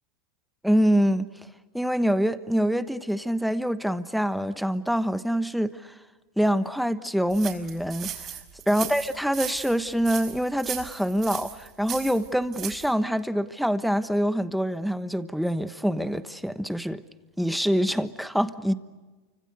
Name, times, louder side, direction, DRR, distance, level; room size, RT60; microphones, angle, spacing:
voice 1, 0.6-1.3 1.7-5.9 6.4-8.3 8.7-17.0 17.4-18.7, equal, ahead, 1.2 m, -25 dB
sound 1, 7.3-12.9, right 9 dB, 35° right, 5.3 m, -37 dB
29.5 x 25.5 x 6.7 m
supercardioid pair, 125°, 0 cm